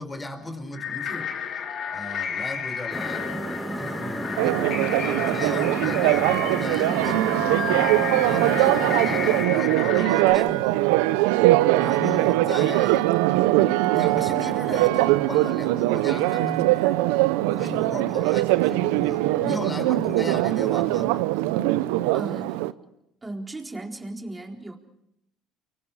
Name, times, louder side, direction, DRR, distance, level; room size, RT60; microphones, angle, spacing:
voice 1, 0.0-1.4 1.9-3.3 3.8-7.5 8.2-10.8 11.8-13.1 13.9-17.0 17.5-21.1, left 2 dB, 20° left, 5.0 m, -36 dB
sound 1, 0.7-10.3, left 7 dB, 55° left, 3.8 m, -32 dB
sound 2, 2.9-9.5, right 1 dB, ahead, 4.3 m, -32 dB
Church bell, 4.4-22.7, right 17 dB, 80° right, 0.8 m, -22 dB
voice 2, 17.9-18.2 19.4-19.7 22.1-22.6 23.2-24.8, right 2 dB, 20° right, 4.1 m, -36 dB
29.5 x 24.0 x 4.9 m
hypercardioid pair, 70°, 0 cm